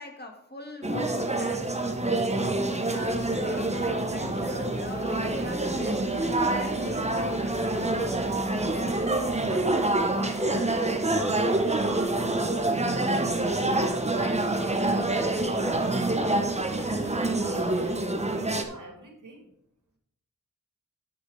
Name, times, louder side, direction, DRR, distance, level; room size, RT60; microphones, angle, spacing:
voice 1, 0.0-2.0 2.2-8.0, left 1 dB, 35° left, 3 dB, 1.8 m, -43 dB
sound 1, 0.8-18.6, right 2 dB, 20° right, 1.2 m, -26 dB
sound 2, 2.9-9.4, equal, 70° left, 3.8 m, -46 dB
sound 3, 5.1-17.9, equal, 5° left, 4.0 m, -49 dB
voice 2, 9.5-13.5 14.0-19.5, right 2 dB, 80° right, 2 dB, 2.5 m, -45 dB
9.7 x 7.1 x 4.8 m, 0.70 s
wide cardioid pair, 85°, 31 cm